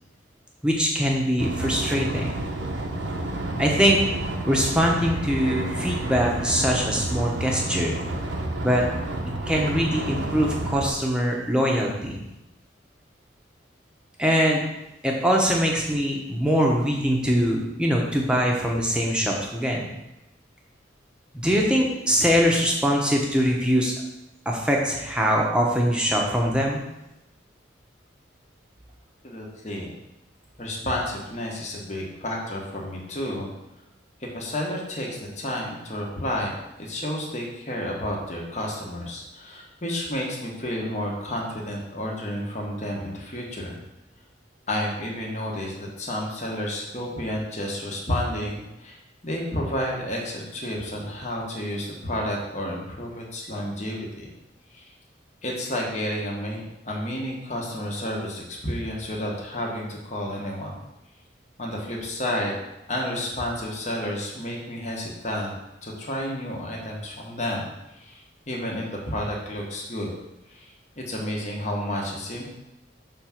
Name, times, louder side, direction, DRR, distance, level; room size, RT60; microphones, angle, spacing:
voice 1, 0.6-2.4 3.6-4.0 4.4-8.0 8.6-8.8 9.5-12.2 14.2-14.6 15.0-19.9 21.3-23.9 24.4-26.8, equal, 5° right, -2 dB, 1.0 m, -22 dB
sound 1, 1.4-10.9, right 1 dB, 80° right, 0.9 m, -30 dB
voice 2, 29.2-29.9 30.6-33.5 34.2-43.8 44.7-49.0 49.2-54.3 54.7-54.9 55.4-60.8 61.6-62.6 62.9-65.6 65.8-70.1 70.5-72.4, left 1 dB, 35° left, -2 dB, 1.4 m, -31 dB
6.6 x 3.6 x 5.9 m, 0.93 s
head